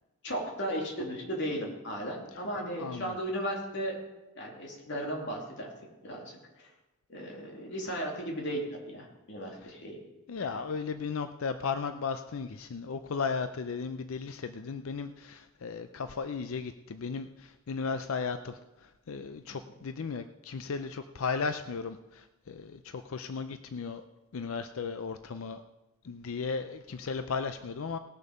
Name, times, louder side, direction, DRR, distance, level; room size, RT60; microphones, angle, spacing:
voice 1, 0.2-4.0 4.4-5.7 6.0-6.7 7.1-10.0 10.4-10.6, equal, 55° left, -1 dB, 2.7 m, -36 dB
voice 2, 2.8-3.1 10.3-24.0 24.3-25.6 26.0-28.0, left 5 dB, 70° left, 10 dB, 0.5 m, -35 dB
18.5 x 6.7 x 5.3 m, 1.0 s
head